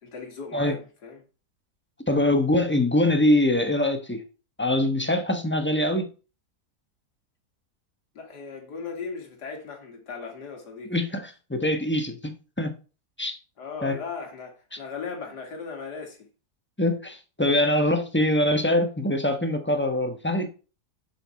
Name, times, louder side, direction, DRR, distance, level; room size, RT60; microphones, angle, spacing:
voice 1, 0.0-1.2 8.1-10.9 13.6-16.3, left 5 dB, 90° left, 2.5 m, -37 dB
voice 2, 2.1-4.2 4.6-6.1 10.9-12.7 13.2-13.4 13.8-14.0 16.8-20.5, left 1 dB, 10° left, 0.8 m, -23 dB
7.7 x 6.3 x 4.3 m
omnidirectional pair, 1.7 m